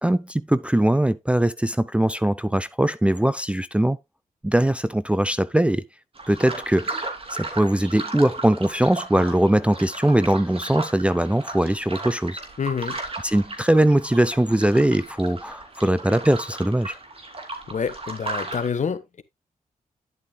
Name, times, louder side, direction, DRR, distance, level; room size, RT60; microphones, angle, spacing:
voice 1, 0.0-4.0 4.4-5.8 6.3-7.0 7.3-12.4 13.2-16.9, right 1 dB, 10° right, 0.5 m, -21 dB
sound 1, 6.1-18.7, right 3 dB, 40° right, 2.9 m, -35 dB
voice 2, 12.6-13.0 17.7-19.2, left 6 dB, 50° left, 1.2 m, -27 dB
11.0 x 8.1 x 2.3 m
cardioid pair, 55°, 16 cm